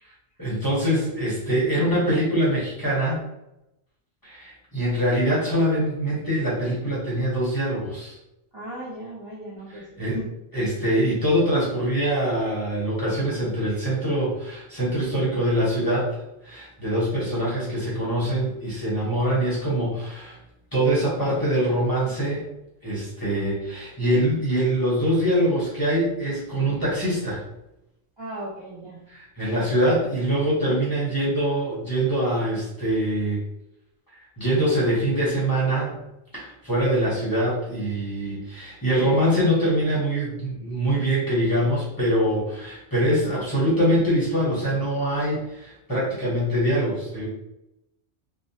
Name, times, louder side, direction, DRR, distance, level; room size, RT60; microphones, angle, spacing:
voice 1, 0.4-3.2 4.2-8.2 9.7-10.2 10.5-16.1 16.4-20.4 20.7-22.4 22.8-27.4 29.1-33.4 34.4-36.0 36.3-47.3, right 1 dB, 20° left, -7 dB, 0.8 m, -24 dB
voice 2, 8.5-10.3 28.2-29.1, right 1 dB, 30° right, -8 dB, 0.5 m, -37 dB
3.0 x 2.1 x 2.7 m, 0.87 s
omnidirectional pair, 1.2 m